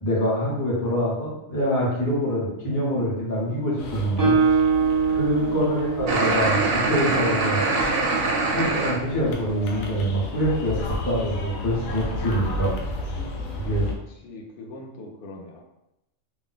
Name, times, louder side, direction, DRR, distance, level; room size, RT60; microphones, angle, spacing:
voice 1, 0.0-4.4 5.1-7.6 8.5-12.7 13.6-13.9, equal, 20° left, -5 dB, 0.6 m, -25 dB
sound 1, 3.8-13.9, left 2 dB, 90° left, 1.0 m, -33 dB
Guitar, 4.2-7.8, right 5 dB, 20° right, 0.6 m, -24 dB
voice 2, 5.3-5.6 14.1-15.6, left 2 dB, 60° left, 1 dB, 0.6 m, -41 dB
sound 2, 6.1-9.0, right 3 dB, 60° right, 0.6 m, -23 dB
2.5 x 2.0 x 3.8 m, 0.89 s
omnidirectional pair, 1.4 m